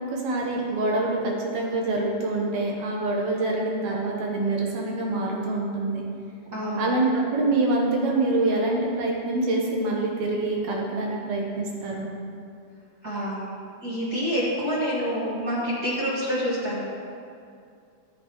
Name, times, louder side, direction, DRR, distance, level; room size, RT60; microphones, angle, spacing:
voice 1, 0.1-6.0 6.8-12.1, right 2 dB, 65° right, -1 dB, 2.1 m, -25 dB
voice 2, 6.5-6.9 13.0-13.5 13.8-16.8, equal, 40° right, -7 dB, 1.5 m, -27 dB
13.5 x 7.5 x 3.0 m, 2.4 s
omnidirectional pair, 3.8 m